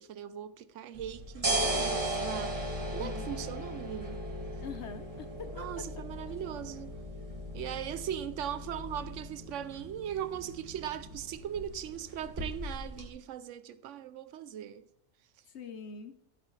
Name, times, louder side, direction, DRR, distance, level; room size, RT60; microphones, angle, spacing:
voice 1, 0.0-4.2 5.5-6.9 7.5-14.8, right 10 dB, 70° right, 0.9 m, -39 dB
sound 1, 1.0-13.1, right 1 dB, 25° right, 2.0 m, -37 dB
voice 2, 3.0-3.3 4.6-5.9 15.5-16.1, left 6 dB, 60° left, 1.1 m, -43 dB
15.0 x 9.1 x 3.3 m
omnidirectional pair, 1.4 m